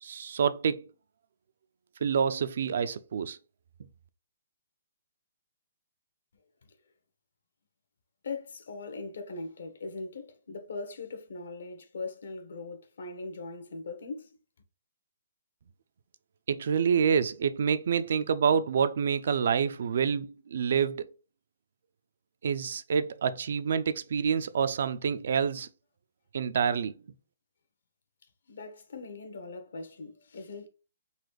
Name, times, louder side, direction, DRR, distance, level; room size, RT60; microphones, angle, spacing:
voice 1, 0.0-0.9 2.0-3.4 16.5-21.1 22.4-25.7 26.3-26.9, right 7 dB, 60° right, 0.4 m, -27 dB
voice 2, 8.2-14.4 28.5-30.7, left 3 dB, 70° left, 1.1 m, -40 dB
4.1 x 2.4 x 4.7 m
hypercardioid pair, 165°, 0 cm